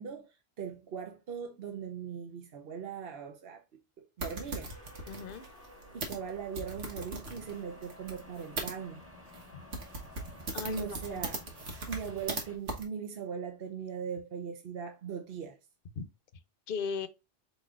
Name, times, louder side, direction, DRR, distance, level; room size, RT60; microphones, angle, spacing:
voice 1, 0.0-4.7 5.9-9.0 10.6-11.4 11.9-15.6, right 7 dB, 60° right, 0.9 m, -40 dB
sound 1, 4.2-8.7 9.3-9.5 9.7-12.4 12.7-12.8, right 2 dB, 80° right, 1.6 m, -39 dB
sound 2, 4.7-12.6, left 2 dB, 10° right, 1.3 m, -53 dB
voice 2, 5.1-5.4 9.5-9.6 10.5-11.2 16.0-16.1 16.7-17.1, left 5 dB, 55° left, 0.8 m, -37 dB
4.8 x 4.2 x 2.4 m
omnidirectional pair, 1.2 m